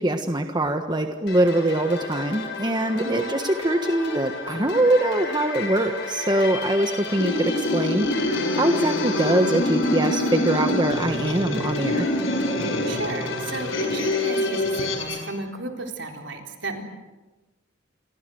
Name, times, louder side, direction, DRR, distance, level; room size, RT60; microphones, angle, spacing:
voice 1, 0.0-8.1 8.5-12.1, right 1 dB, 20° right, 6 dB, 1.4 m, -23 dB
sound 1, 1.3-15.0, left 4 dB, 60° left, 5.9 m, -34 dB
sound 2, 7.1-15.3, left 1 dB, 80° left, 6.2 m, -25 dB
voice 2, 12.9-16.8, right 2 dB, 65° right, 3 dB, 4.1 m, -33 dB
28.5 x 24.0 x 7.9 m, 1.2 s
head